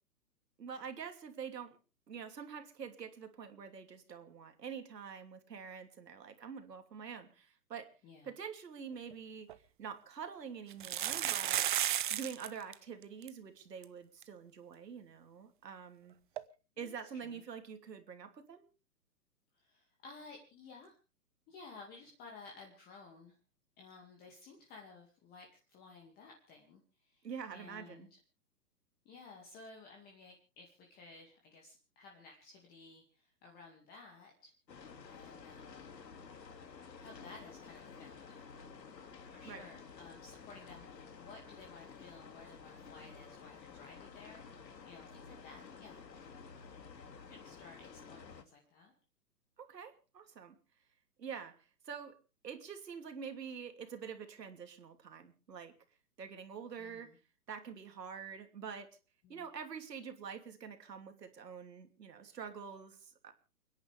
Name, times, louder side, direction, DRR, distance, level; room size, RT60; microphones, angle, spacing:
voice 1, 0.6-1.8 2.1-7.9 8.2-9.5 9.8-16.1 16.8-18.6 27.2-28.1 39.4-39.7 49.6-50.6 51.2-51.5 51.8-52.1 52.4-55.7 56.2-57.1 57.5-58.9 59.3-63.3, right 6 dB, 75° right, 7 dB, 3.0 m, -46 dB
sound 1, 9.1-9.2 9.5-9.6 10.7-12.5 12.7-12.8 13.0-13.3 13.8-13.9 14.2-14.3 16.4-16.5, right 11 dB, 30° right, 0.7 m, -33 dB
voice 2, 19.5-21.0 21.5-23.4 23.8-28.2 29.1-34.5 35.0-35.8 37.0-38.6 39.3-46.4 47.1-48.9 56.8-57.1 59.2-59.5, left 4 dB, 20° left, 1 dB, 2.3 m, -55 dB
sound 2, 34.7-48.4, left 5 dB, 80° left, 2.6 m, -52 dB
30.0 x 10.5 x 3.5 m, 0.34 s
hypercardioid pair, 145°, 49 cm